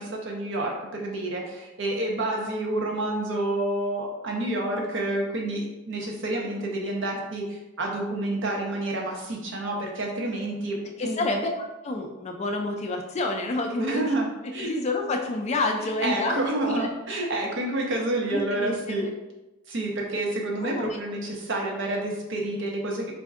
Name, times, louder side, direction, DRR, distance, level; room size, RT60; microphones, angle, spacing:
voice 1, 0.0-11.3 13.8-14.7 15.8-19.1 19.7-23.1, right 1 dB, 60° right, -1 dB, 0.7 m, -29 dB
voice 2, 11.0-11.5 11.8-14.1 14.6-16.9 18.3-19.1 20.6-21.0, left 2 dB, 30° left, 3 dB, 0.3 m, -29 dB
4.2 x 2.6 x 2.4 m, 1.0 s
head